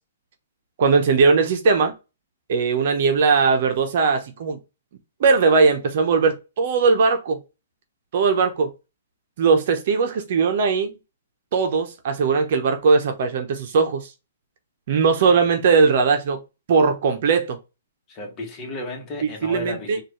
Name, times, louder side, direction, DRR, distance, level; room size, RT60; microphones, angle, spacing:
voice 1, 0.8-1.9 2.5-4.6 5.2-7.4 8.1-8.7 9.4-11.0 11.5-14.1 14.9-16.4 16.7-17.6 19.4-20.0, right 4 dB, 55° right, 0.9 m, -19 dB
voice 2, 18.1-20.0, left 2 dB, 25° left, 1.6 m, -34 dB
4.4 x 2.7 x 3.1 m
hypercardioid pair, 150°, 0 cm